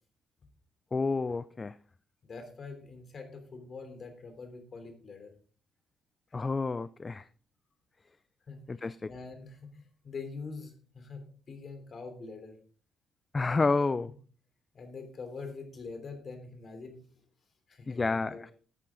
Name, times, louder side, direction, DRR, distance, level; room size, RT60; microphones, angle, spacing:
voice 1, 0.9-1.7 6.3-7.2 8.7-9.1 13.3-14.1 17.9-18.5, left 3 dB, 25° left, 16 dB, 0.4 m, -29 dB
voice 2, 2.2-5.3 8.5-12.6 13.3-13.7 14.7-17.1 17.7-18.4, left 4 dB, 45° left, 7 dB, 3.3 m, -44 dB
13.5 x 8.6 x 3.8 m, 0.42 s
cardioid pair, 90°, 0 cm